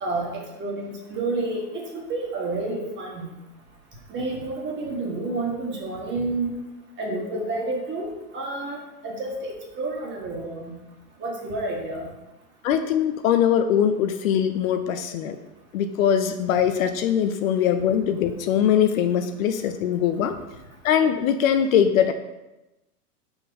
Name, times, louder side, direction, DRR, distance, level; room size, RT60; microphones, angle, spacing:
voice 1, 0.0-3.3 4.1-6.5 7.0-8.8 9.0-10.7 11.2-12.1, right 2 dB, 25° right, -1 dB, 1.7 m, -30 dB
voice 2, 12.6-15.4 15.7-20.4 20.8-22.1, left 9 dB, 60° left, 8 dB, 0.7 m, -22 dB
5.5 x 4.6 x 5.4 m, 0.98 s
hypercardioid pair, 130°, 47 cm